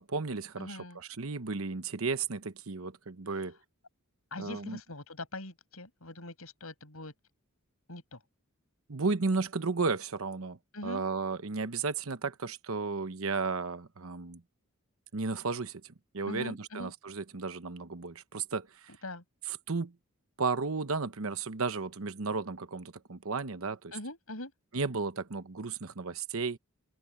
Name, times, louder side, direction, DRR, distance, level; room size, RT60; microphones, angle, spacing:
voice 1, 0.0-3.6 4.4-4.8 8.9-10.6 10.8-14.4 15.1-18.9 19.5-19.9 20.4-23.9 24.7-26.6, right 4 dB, 70° right, 1.0 m, -34 dB
voice 2, 0.6-1.0 4.3-7.1 7.9-8.2 10.7-11.1 16.3-16.9 19.0-19.2 23.9-24.5, left 2 dB, 75° left, 7.4 m, -42 dB
open air
head